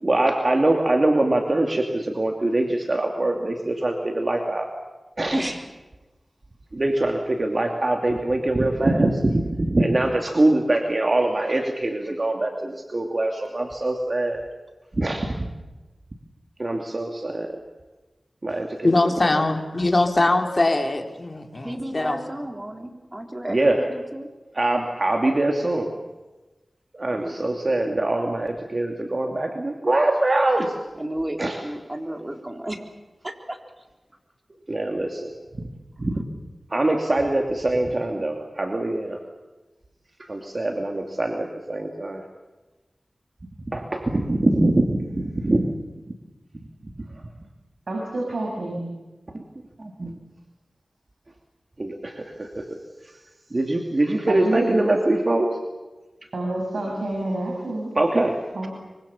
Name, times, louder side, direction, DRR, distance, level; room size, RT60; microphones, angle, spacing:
voice 1, 0.0-4.7 5.2-5.4 6.7-14.4 15.0-15.5 16.6-17.6 18.4-18.9 19.2-19.5 23.5-23.8 24.5-25.9 26.9-30.7 31.4-31.6 34.7-35.3 36.0-36.2 36.7-39.2 40.3-42.2 43.7-45.6 49.3-49.4 49.8-50.2 51.8-52.6 53.5-55.5 57.9-58.4, right 2 dB, 45° right, 2 dB, 2.6 m, -23 dB
voice 2, 5.3-5.7 21.6-24.3 27.1-27.4 30.6-30.7 30.9-32.9 33.2-33.8, right 1 dB, 25° right, 4 dB, 3.8 m, -32 dB
voice 3, 18.8-22.2, left 2 dB, 45° left, 4 dB, 3.2 m, -22 dB
voice 4, 47.9-48.9 54.3-54.8 56.3-57.9 58.5-58.7, right 2 dB, 80° right, -1 dB, 6.2 m, -28 dB
25.0 x 24.5 x 7.2 m, 1.1 s
wide cardioid pair, 55°, 0 cm